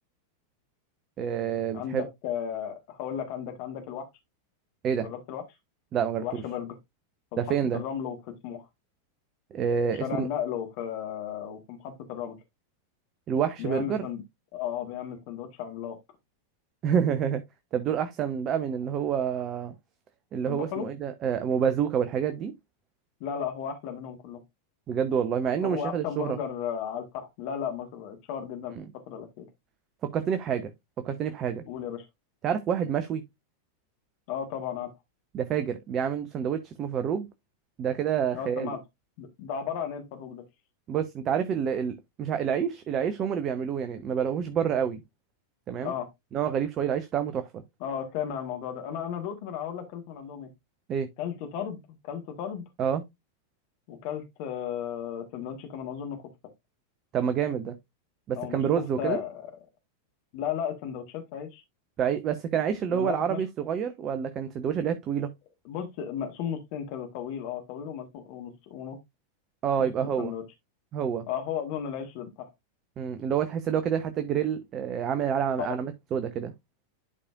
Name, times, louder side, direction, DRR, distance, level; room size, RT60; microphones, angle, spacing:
voice 1, 1.2-2.0 4.8-5.1 5.9-6.4 7.4-7.8 9.5-10.3 13.3-14.0 16.8-17.4 17.7-19.7 20.3-22.5 24.9-26.4 28.8-28.9 30.0-30.7 31.0-31.6 32.4-33.2 35.3-37.3 37.8-38.7 40.9-45.0 45.7-45.9 46.3-47.6 50.9-51.1 52.8-53.0 57.1-57.8 58.3-59.2 62.0-65.3 69.6-70.3 70.9-71.2 73.0-76.5, right 8 dB, 30° right, 0.8 m, -28 dB
voice 2, 1.7-4.1 5.0-5.4 6.2-6.8 7.3-8.7 10.0-12.4 13.6-14.2 14.5-16.0 20.4-20.9 23.2-24.4 25.6-28.7 29.1-29.5 31.7-32.0 34.3-34.9 38.3-38.8 39.2-40.4 45.8-46.1 47.8-50.5 51.2-51.8 52.0-52.6 53.9-56.2 58.3-59.5 60.3-61.6 62.9-63.4 65.6-69.0 69.8-69.9 70.2-70.4 71.3-72.5 75.6-75.7, left 8 dB, 45° left, 1.5 m, -34 dB
11.0 x 4.9 x 2.4 m
figure-of-eight pair, 90°, 0 cm